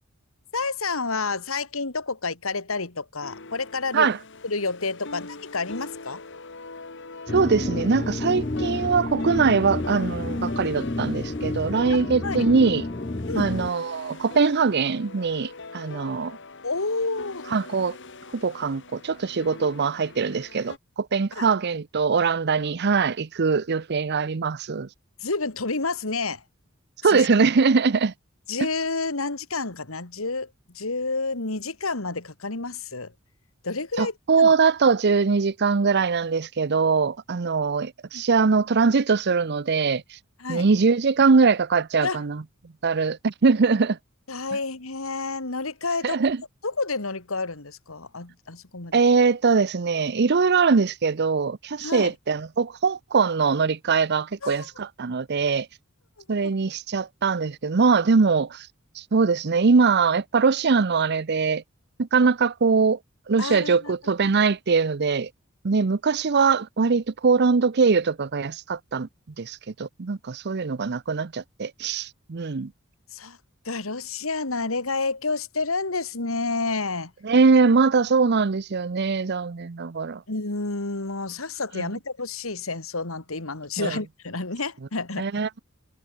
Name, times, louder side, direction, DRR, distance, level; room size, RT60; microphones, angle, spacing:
voice 1, 0.5-4.1 4.4-6.2 11.9-12.5 13.3-13.5 16.6-17.5 21.3-21.5 25.2-26.4 27.0-27.2 28.5-30.5 30.7-33.1 33.6-34.5 38.1-38.2 40.4-40.7 42.0-42.2 44.3-46.2 46.6-49.0 51.8-52.1 54.4-54.7 56.4-56.5 63.4-63.9 73.1-73.4 73.7-77.1 80.3-85.4, left 3 dB, 85° left, 2.5 m, -29 dB
sound 1, 3.2-20.8, left 3 dB, 60° left, 2.8 m, -42 dB
sound 2, 7.3-13.7, left 2 dB, 30° left, 0.8 m, -30 dB
voice 2, 7.3-12.9 13.3-16.4 17.5-18.0 18.3-24.9 27.0-28.1 28.6-28.7 34.0-40.0 40.5-42.4 42.8-44.0 46.0-46.4 48.9-55.7 56.3-58.7 59.0-61.6 62.0-63.0 63.3-65.3 65.6-69.1 69.4-72.7 77.2-80.2 81.7-81.8 83.8-84.0 85.2-85.6, right 5 dB, 55° right, 0.6 m, -22 dB
head